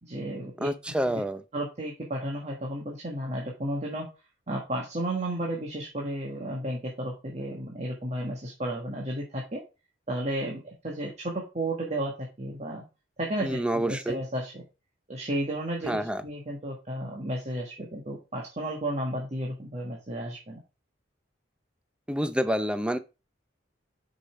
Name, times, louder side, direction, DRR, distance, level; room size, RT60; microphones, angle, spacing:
voice 1, 0.0-0.7 1.0-1.1 1.5-4.1 4.5-9.6 10.1-12.8 13.2-14.6 15.1-20.6, right 1 dB, 35° right, 1.5 m, -33 dB
voice 2, 0.6-1.4 13.4-14.2 15.9-16.2 22.1-23.0, right 1 dB, 5° right, 0.6 m, -28 dB
6.9 x 5.5 x 4.4 m
head